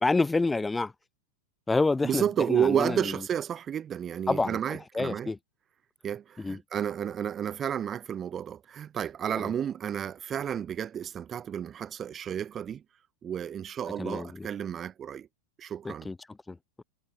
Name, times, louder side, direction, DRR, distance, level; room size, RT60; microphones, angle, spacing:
voice 1, 0.0-0.9 1.7-3.0 4.3-4.6 4.9-5.4 6.4-6.6 9.4-9.5 14.0-14.5 15.8-16.2 16.5-16.8, left 3 dB, 10° left, 2.2 m, -28 dB
voice 2, 2.0-5.3 6.0-12.8 13.2-15.3 15.6-16.1, right 9 dB, 25° right, 2.0 m, -31 dB
figure-of-eight pair, 90°, 0 cm